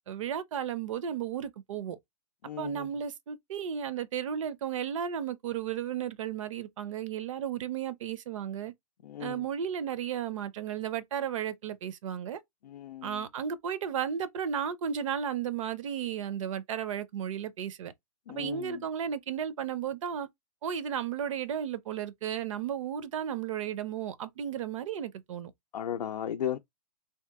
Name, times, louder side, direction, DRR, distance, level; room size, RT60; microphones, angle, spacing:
voice 1, 0.1-2.0 2.6-8.7 9.2-12.4 13.0-17.9 18.3-20.3 20.6-25.5, right 8 dB, 50° right, 0.5 m, -34 dB
voice 2, 2.4-2.9 9.0-9.4 12.6-13.2 18.3-18.8 25.7-26.6, left 10 dB, 80° left, 0.5 m, -36 dB
2.9 x 2.6 x 3.4 m
hypercardioid pair, 155°, 21 cm